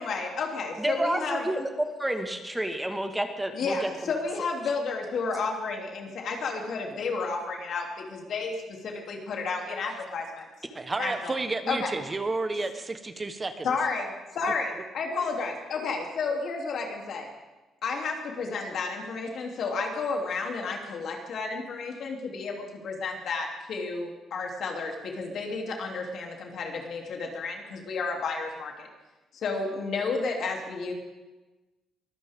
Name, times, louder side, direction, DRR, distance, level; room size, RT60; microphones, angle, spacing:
voice 1, 0.0-1.5 3.5-10.5 11.0-11.3 11.7-11.9 13.6-17.3 17.8-28.9 29.3-30.9, left 4 dB, 65° left, 1 dB, 3.1 m, -32 dB
voice 2, 0.8-1.7 2.0-3.9, right 1 dB, 10° right, 5 dB, 1.8 m, -29 dB
voice 3, 10.7-13.7, right 3 dB, 25° right, 8 dB, 1.2 m, -31 dB
23.0 x 15.0 x 3.7 m, 1.2 s
cardioid pair, 90°, 0 cm